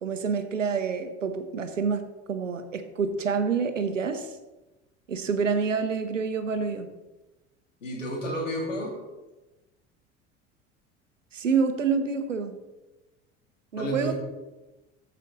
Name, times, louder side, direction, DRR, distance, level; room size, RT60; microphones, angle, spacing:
voice 1, 0.0-4.3 5.1-6.9 11.3-12.5 13.7-14.1, right 5 dB, 85° right, 9 dB, 0.9 m, -27 dB
voice 2, 7.8-9.0 13.8-14.1, equal, 85° left, -1 dB, 2.6 m, -31 dB
14.0 x 5.6 x 4.0 m, 1.1 s
figure-of-eight pair, 70°, 37 cm